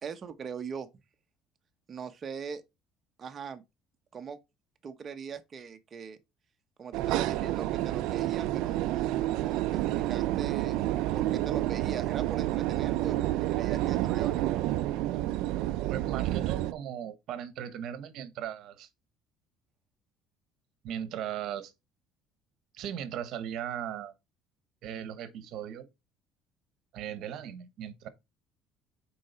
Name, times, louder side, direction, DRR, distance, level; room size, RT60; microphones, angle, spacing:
voice 1, 0.0-0.9 1.9-2.6 3.2-3.6 4.1-4.4 4.8-6.2 6.8-10.8 11.1-14.6, right 6 dB, 30° right, 1.0 m, -41 dB
sound 1, 6.9-16.7, right 15 dB, 75° right, 0.5 m, -29 dB
voice 2, 15.9-18.9 20.8-21.7 22.7-24.1 24.8-25.9 26.9-28.1, right 9 dB, 60° right, 1.2 m, -37 dB
6.3 x 4.8 x 4.3 m
cardioid pair, 140°, 0 cm